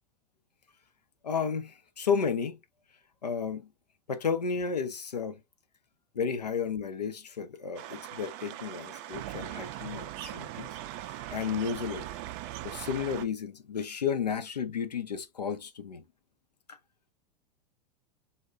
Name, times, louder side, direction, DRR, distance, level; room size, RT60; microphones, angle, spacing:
voice 1, 1.2-2.6 3.2-3.7 4.1-5.4 6.1-10.7 11.1-12.1 12.6-16.0 16.7-16.8, left 6 dB, 90° left, 0.6 m, -32 dB
sound 1, 7.7-13.2, right 13 dB, 45° right, 0.4 m, -40 dB
2.2 x 2.1 x 3.5 m
hypercardioid pair, 90°, 20 cm